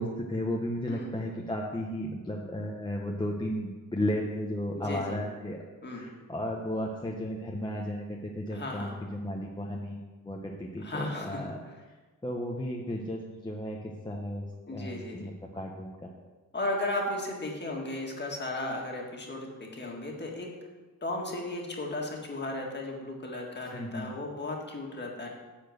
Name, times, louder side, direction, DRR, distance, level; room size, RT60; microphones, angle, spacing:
voice 1, 0.0-5.6 5.9-11.6 12.2-16.1 23.7-24.1, left 1 dB, 15° left, -1 dB, 0.8 m, -34 dB
voice 2, 4.7-5.2 5.8-6.0 8.5-9.0 10.8-11.8 14.7-15.3 16.5-20.5 21.0-25.3, left 2 dB, 30° left, 0 dB, 1.8 m, -35 dB
10.5 x 4.4 x 7.8 m, 1.3 s
wide cardioid pair, 150°, 33 cm